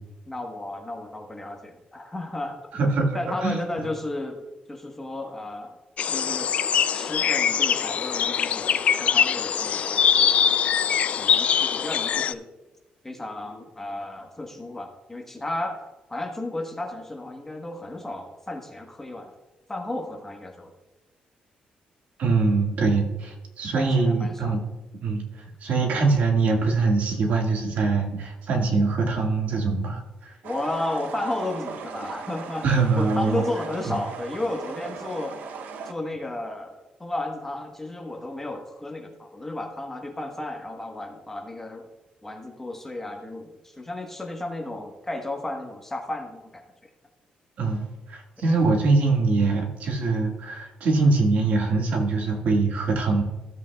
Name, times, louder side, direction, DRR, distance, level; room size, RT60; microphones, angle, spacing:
voice 1, 0.3-2.6 3.1-4.4 4.7-5.8 6.1-10.3 11.2-12.4 13.0-15.8 16.1-19.3 19.7-20.7 23.8-24.6 30.4-32.7 33.0-35.4 35.8-41.9 42.2-46.6 48.4-48.6, left 2 dB, 15° left, 2 dB, 1.2 m, -33 dB
voice 2, 2.7-3.1 3.4-3.6 22.2-24.6 25.0-25.2 25.6-30.0 32.6-33.4 33.8-34.0 47.6-53.2, right 3 dB, 65° right, 1 dB, 1.7 m, -23 dB
sound 1, 6.0-12.3, left 8 dB, 50° left, 0.3 m, -23 dB
sound 2, 30.4-35.9, right 5 dB, 85° right, 0.7 m, -38 dB
15.0 x 8.2 x 2.3 m, 1.1 s
cardioid pair, 145°, 3 cm